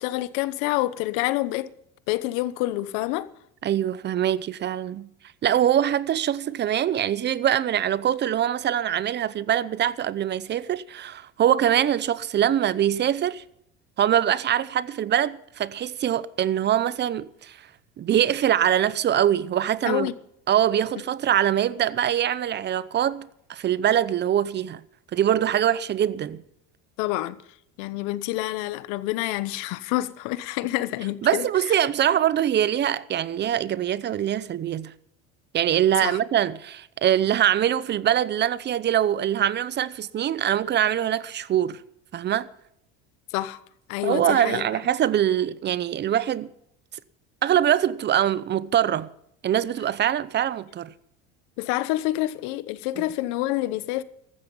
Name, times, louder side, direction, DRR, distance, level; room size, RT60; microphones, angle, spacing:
voice 1, 0.0-1.7 2.1-3.3 19.8-20.1 27.0-27.4 27.8-31.8 36.0-36.2 43.3-43.6 43.9-44.6 51.6-54.0, left 16 dB, 75° left, 1.1 m, -27 dB
voice 2, 3.6-5.1 5.4-13.4 14.0-17.6 18.0-20.1 20.5-24.8 25.1-26.4 31.2-34.9 35.5-41.8 42.1-42.5 44.0-46.5 47.4-49.1 49.4-50.9, right 10 dB, 35° right, 0.8 m, -23 dB
15.0 x 13.0 x 5.5 m
supercardioid pair, 125°, 32 cm